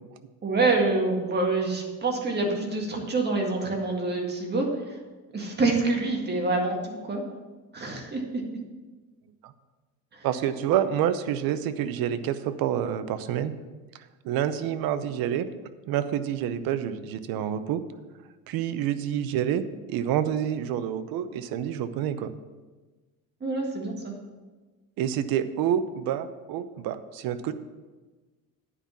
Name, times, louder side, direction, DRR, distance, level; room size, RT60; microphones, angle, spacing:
voice 1, 0.4-5.0 5.3-7.2 7.7-8.2 10.1-10.2 23.4-24.1, right 3 dB, 30° right, 1 dB, 2.0 m, -26 dB
voice 2, 10.2-13.5 14.2-15.5 15.9-17.8 18.5-19.6 19.9-22.3 25.0-27.5, right 10 dB, 80° right, 12 dB, 0.8 m, -28 dB
10.0 x 5.5 x 7.1 m, 1.3 s
cardioid pair, 130°, 35 cm